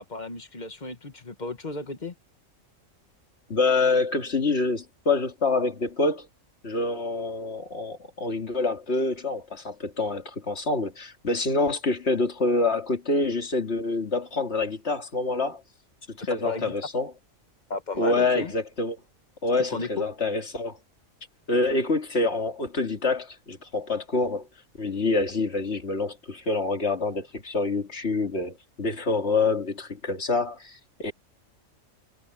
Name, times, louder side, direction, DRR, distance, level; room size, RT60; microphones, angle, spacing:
voice 1, 0.0-2.1 16.4-16.7 17.7-18.5 19.7-20.1, left 3 dB, 35° left, 1.7 m, -34 dB
voice 2, 3.5-6.3 6.6-15.6 16.1-17.1 18.0-19.0 19.4-20.8 21.5-24.5 24.8-31.1, left 3 dB, 55° left, 2.8 m, -26 dB
omnidirectional pair, 1.4 m